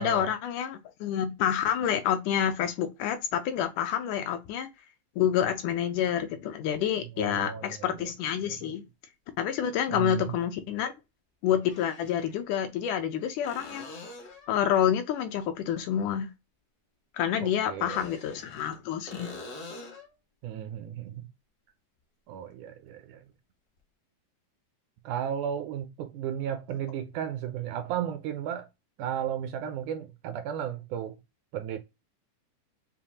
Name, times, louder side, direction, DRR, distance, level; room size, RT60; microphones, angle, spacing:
voice 1, 0.0-4.7 5.2-8.8 9.4-10.9 11.4-13.9 14.5-16.3 17.1-19.3, left 9 dB, 80° left, 2.0 m, -28 dB
voice 2, 7.2-8.1 8.4-8.8 9.9-10.2 17.4-18.0 20.4-21.3 22.3-23.2 25.1-28.7 29.0-31.2 31.5-31.8, right 9 dB, 80° right, 1.8 m, -34 dB
sound 1, 8.1-8.2 10.3-10.4 11.6-12.4 13.4-14.6 17.7-18.8 19.1-20.1 23.8-23.9, left 2 dB, 60° left, 1.0 m, -45 dB
7.0 x 2.4 x 2.8 m
omnidirectional pair, 3.9 m